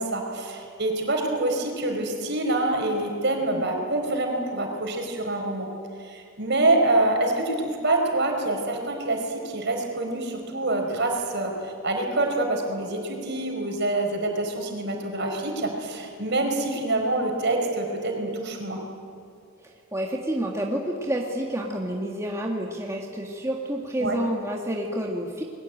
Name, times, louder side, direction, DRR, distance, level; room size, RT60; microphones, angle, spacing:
voice 1, 0.0-5.7 6.0-18.8 24.0-24.2, right 2 dB, 55° right, 2 dB, 5.0 m, -26 dB
voice 2, 19.6-25.4, right 1 dB, 15° right, -1 dB, 1.9 m, -29 dB
30.0 x 21.5 x 9.1 m, 2.5 s
head